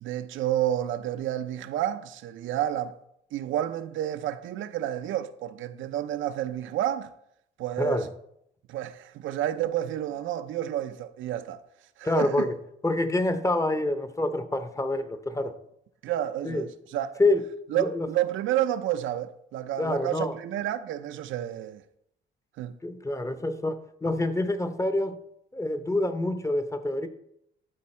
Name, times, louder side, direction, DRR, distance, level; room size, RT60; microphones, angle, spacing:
voice 1, 0.0-3.0 3.3-7.1 7.6-8.1 8.7-11.6 12.0-12.5 16.0-17.2 17.7-21.8 22.6-22.8, right 12 dB, 80° right, 0.6 m, -30 dB
voice 2, 7.8-8.1 12.0-12.6 12.8-15.6 16.4-16.7 17.2-17.4 17.7-18.1 19.8-20.3 22.8-25.2 25.5-27.1, left 2 dB, 15° left, 0.8 m, -27 dB
12.0 x 4.5 x 4.3 m
cardioid pair, 90°, 20 cm